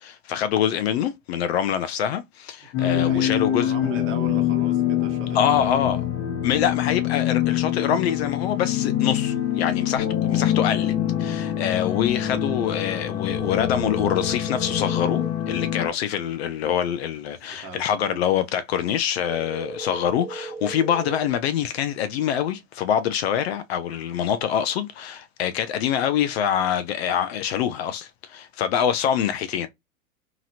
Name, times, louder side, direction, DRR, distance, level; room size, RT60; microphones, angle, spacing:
voice 1, 0.0-3.7 5.3-6.0 6.4-10.9 11.2-29.7, left 9 dB, 50° left, 0.5 m, -25 dB
sound 1, 2.7-15.9, left 11 dB, 30° left, 0.9 m, -25 dB
voice 2, 2.8-5.9 10.0-10.5 17.4-18.2 18.8-18.9, right 5 dB, 30° right, 1.0 m, -37 dB
sound 2, 13.3-15.3 19.3-21.3, right 4 dB, 5° right, 0.3 m, -36 dB
2.9 x 2.9 x 2.4 m
hypercardioid pair, 105°, 41 cm